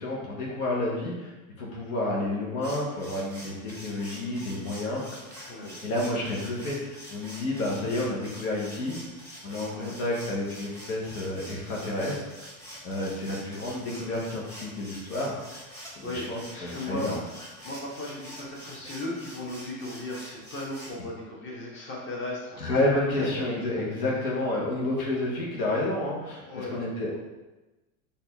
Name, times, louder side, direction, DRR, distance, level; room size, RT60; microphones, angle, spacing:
voice 1, 0.0-1.3 1.6-5.0 5.8-9.0 9.4-12.5 12.8-15.3 15.9-17.2 22.6-27.2, left 1 dB, 75° left, -4 dB, 1.2 m, -30 dB
sound 1, 2.6-20.9, equal, 5° left, 1.1 m, -45 dB
voice 2, 5.3-5.8 9.6-10.0 15.6-17.3 17.6-22.7 23.1-23.5 23.7-24.6 26.4-26.8, left 1 dB, 25° left, -4 dB, 1.3 m, -37 dB
4.2 x 2.7 x 3.4 m, 1.1 s
hypercardioid pair, 90°, 44 cm